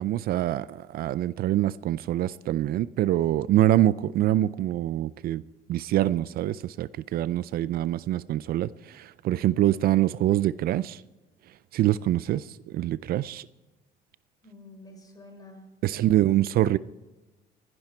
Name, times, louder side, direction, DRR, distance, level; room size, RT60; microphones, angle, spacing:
voice 1, 0.0-5.4 5.7-11.0 11.7-13.5 15.8-16.8, right 13 dB, 65° right, 0.4 m, -25 dB
voice 2, 14.4-16.6, left 1 dB, 20° left, 4.4 m, -50 dB
21.5 x 11.0 x 4.4 m
cardioid pair, 110°, 17 cm